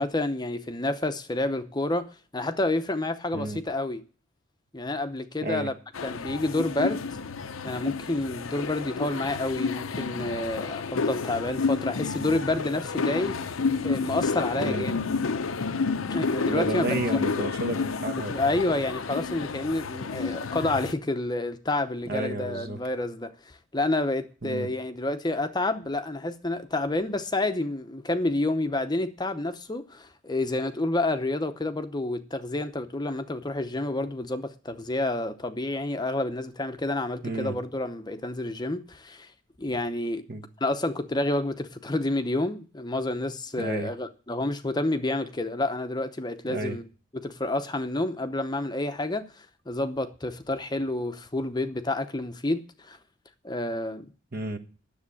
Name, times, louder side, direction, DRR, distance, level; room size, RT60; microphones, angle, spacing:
voice 1, 0.0-4.0 4.7-5.7 6.0-7.0 7.6-13.4 13.8-15.0 16.1-17.2 18.2-39.3 39.6-40.2 40.6-46.9 47.1-53.0 53.4-54.1, left 2 dB, 20° left, 0.7 m, -29 dB
sound 1, 5.9-20.9, left 4 dB, 90° left, 0.7 m, -30 dB
voice 2, 14.5-14.9 16.4-18.3 22.1-22.8 24.4-24.7 37.2-37.5 40.3-40.4 43.6-43.9 46.5-46.8 54.3-54.6, right 2 dB, 50° right, 1.2 m, -31 dB
10.0 x 7.2 x 8.4 m
head